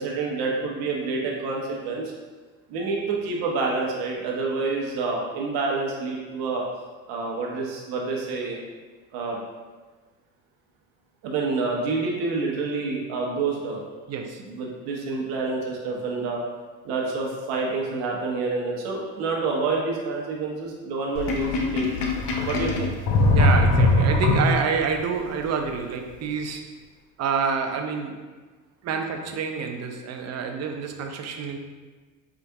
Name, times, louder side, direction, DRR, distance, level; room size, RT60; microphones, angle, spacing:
voice 1, 0.0-2.1 2.7-6.6 7.1-8.6 9.1-9.4 11.2-13.8 14.5-16.4 16.8-22.0 22.4-22.9, right 3 dB, 60° right, -2 dB, 1.0 m, -28 dB
voice 2, 14.1-14.4 22.5-22.8 23.3-26.7 27.2-28.2 28.8-31.6, right 6 dB, 40° right, 4 dB, 0.6 m, -28 dB
Sink (filling or washing), 21.1-24.9, left 2 dB, 65° left, 0.8 m, -21 dB
4.6 x 2.5 x 3.5 m, 1.3 s
supercardioid pair, 85°, 42 cm